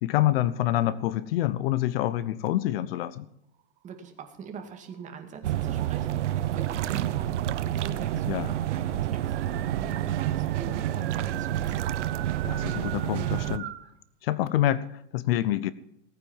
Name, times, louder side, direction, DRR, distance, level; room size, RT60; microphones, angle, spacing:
voice 1, 0.0-3.2 8.2-8.5 12.4-13.7 14.2-15.7, left 13 dB, 55° left, 17 dB, 0.8 m, -27 dB
voice 2, 3.8-11.9, right 6 dB, 20° right, 4 dB, 2.3 m, -43 dB
sound 1, 3.8-5.2 5.8-6.4 7.4-7.5 7.8-7.9 8.2-13.9, right 14 dB, 55° right, 1.2 m, -43 dB
sound 2, 5.4-13.6, right 12 dB, 85° right, 1.0 m, -29 dB
18.5 x 9.3 x 7.2 m, 0.75 s
supercardioid pair, 150°, 35 cm